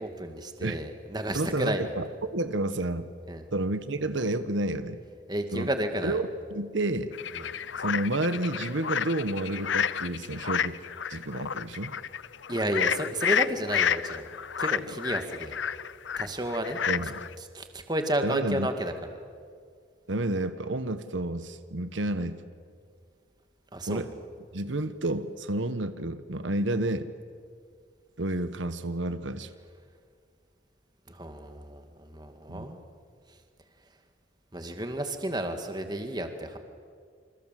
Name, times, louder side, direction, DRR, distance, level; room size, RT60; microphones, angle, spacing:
voice 1, 0.0-1.9 3.3-3.5 5.3-6.2 7.3-7.5 12.5-14.3 14.6-15.6 16.2-16.8 17.5-18.9 23.7-24.1 31.1-32.8 33.3-33.4 34.5-36.6, right 1 dB, 20° right, 6 dB, 2.1 m, -32 dB
voice 2, 1.3-3.1 3.5-5.0 5.5-5.7 6.0-7.1 7.8-10.8 11.1-11.9 16.9-17.1 18.2-18.7 20.1-22.4 23.9-24.1 24.5-27.1 28.2-29.5 32.5-32.7, right 1 dB, 75° right, 11 dB, 1.3 m, -30 dB
sound 1, 7.1-17.3, left 8 dB, 75° left, 0.7 m, -30 dB
28.0 x 27.0 x 7.6 m, 2.1 s
head